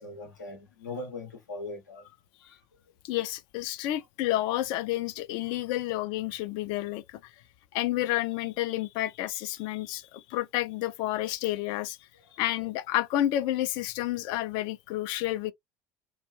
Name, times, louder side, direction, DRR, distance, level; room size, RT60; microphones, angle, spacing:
voice 1, 0.0-2.2 2.4-2.6, left 2 dB, 85° left, 0.7 m, -40 dB
voice 2, 3.0-7.3 7.7-12.0 12.4-15.5, left 14 dB, 55° left, 0.4 m, -30 dB
2.3 x 2.0 x 2.9 m
figure-of-eight pair, 70°, 9 cm